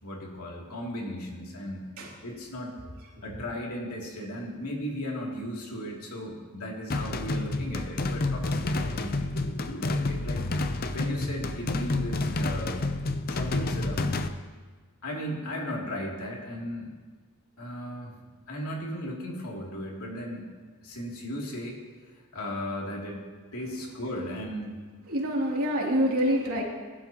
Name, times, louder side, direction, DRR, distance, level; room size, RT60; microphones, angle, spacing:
voice 1, 0.0-2.7 3.2-10.4 10.9-12.9 13.3-14.0 15.0-16.9 17.6-18.1 18.5-20.5 20.8-21.8 22.3-23.2 23.5-24.8, equal, 85° left, -2 dB, 2.9 m, -36 dB
sound 1, 6.9-14.3, left 2 dB, 40° left, 0.6 m, -29 dB
voice 2, 25.1-26.6, equal, 75° right, -3 dB, 3.1 m, -27 dB
20.0 x 11.5 x 3.0 m, 1.4 s
head